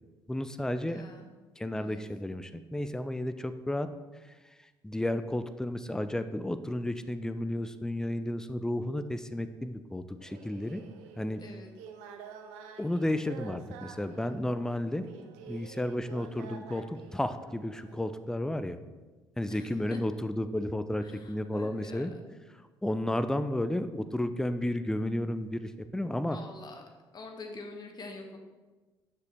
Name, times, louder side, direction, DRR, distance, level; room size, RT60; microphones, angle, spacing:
voice 1, 0.3-1.0 1.6-3.9 4.2-4.3 4.8-10.8 11.2-11.4 12.8-15.0 15.5-18.8 19.4-22.1 22.5-26.4, left 1 dB, 5° left, 11 dB, 0.4 m, -32 dB
voice 2, 0.9-1.3 1.7-2.0 11.4-11.7 19.5-20.0 21.0-22.1 26.3-26.8 27.1-28.4, left 3 dB, 35° left, 3 dB, 1.2 m, -46 dB
sound 1, 10.2-18.2, right 7 dB, 65° right, 0.6 m, -49 dB
7.2 x 6.6 x 3.4 m, 1.2 s
figure-of-eight pair, 50°, 12 cm